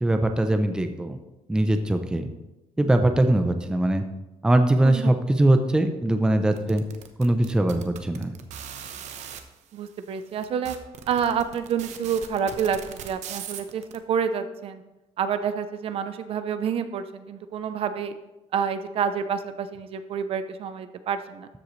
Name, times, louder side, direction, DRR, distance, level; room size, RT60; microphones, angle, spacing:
voice 1, 0.0-1.2 1.5-2.3 2.8-4.0 4.4-6.8 7.2-8.3, right 1 dB, 5° right, 7 dB, 0.5 m, -21 dB
sound 1, 6.6-9.4 10.1-10.2 10.4-14.0, right 9 dB, 85° right, 0.9 m, -39 dB
voice 2, 9.7-10.8 11.1-12.8 13.0-14.8 15.2-18.1 18.5-21.5, right 7 dB, 55° right, 10 dB, 0.6 m, -28 dB
13.0 x 7.7 x 3.2 m, 1.0 s
cardioid pair, 180°, 12 cm